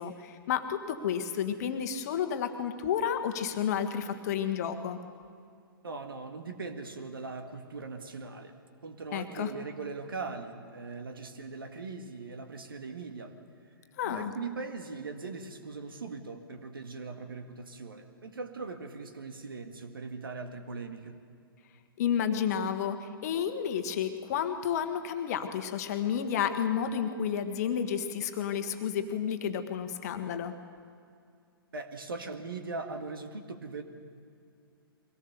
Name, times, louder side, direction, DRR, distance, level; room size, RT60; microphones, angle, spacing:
voice 1, 0.0-5.0 9.1-9.5 14.0-14.3 22.0-30.5, left 8 dB, 40° left, 8 dB, 1.4 m, -31 dB
voice 2, 5.8-8.5 8.8-13.3 14.0-21.2 31.7-33.8, right 4 dB, 65° right, 6 dB, 1.9 m, -40 dB
23.0 x 17.5 x 7.0 m, 2.4 s
figure-of-eight pair, 115°, 12 cm